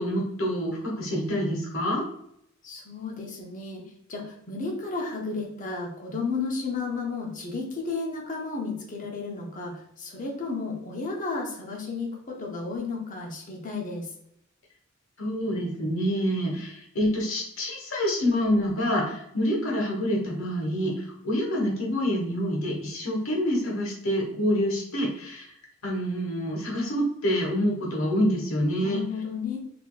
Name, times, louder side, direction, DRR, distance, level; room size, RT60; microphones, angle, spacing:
voice 1, 0.0-2.0 15.2-25.5 25.8-29.0, equal, 80° left, -1 dB, 1.2 m, -27 dB
voice 2, 2.6-14.1 28.8-29.6, left 4 dB, 40° left, 0 dB, 0.8 m, -33 dB
4.1 x 2.8 x 2.3 m, 0.74 s
head